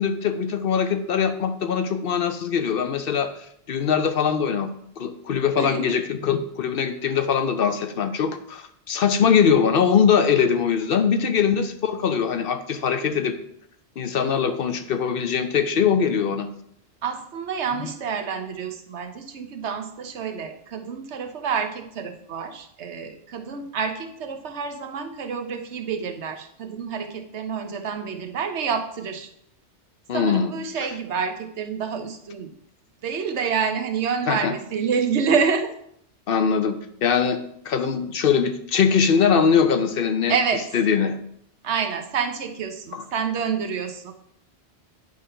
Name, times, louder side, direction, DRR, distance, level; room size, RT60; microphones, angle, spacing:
voice 1, 0.0-3.3 3.7-4.7 5.0-13.4 14.0-16.5 30.1-30.5 34.3-34.5 36.3-40.3 40.7-41.2 42.9-43.0, left 7 dB, 60° left, 8 dB, 0.8 m, -22 dB
voice 2, 5.6-6.0 17.0-29.3 30.1-32.5 33.0-35.7 40.3-40.7 41.6-44.1, right 6 dB, 80° right, 6 dB, 1.1 m, -28 dB
9.2 x 3.8 x 5.5 m, 0.71 s
omnidirectional pair, 1.1 m